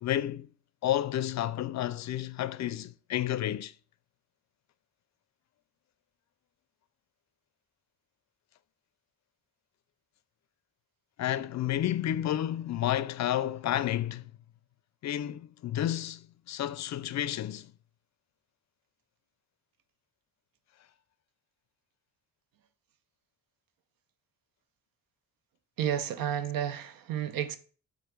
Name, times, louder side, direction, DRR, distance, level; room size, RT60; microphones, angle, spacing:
voice 1, 0.0-0.5 0.8-3.7 11.2-14.3 15.0-17.7, left 12 dB, 55° left, 0.4 m, -31 dB
voice 2, 25.8-27.6, right 10 dB, 80° right, 0.7 m, -31 dB
7.6 x 2.6 x 5.0 m
cardioid pair, 105°, 34 cm